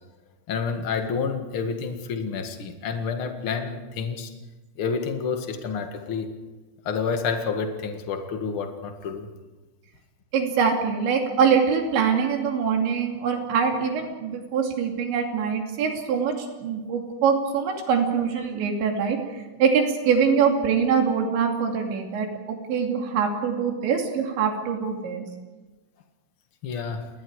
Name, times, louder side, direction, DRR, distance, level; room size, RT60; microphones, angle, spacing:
voice 1, 0.5-4.3 4.7-6.3 6.8-9.3 17.7-17.8 24.8-24.9 26.6-27.1, left 5 dB, 65° left, 5 dB, 1.3 m, -29 dB
voice 2, 10.3-19.2 19.6-25.3, right 6 dB, 70° right, 2 dB, 5.0 m, -23 dB
29.5 x 20.5 x 4.9 m, 1.2 s
omnidirectional pair, 5.4 m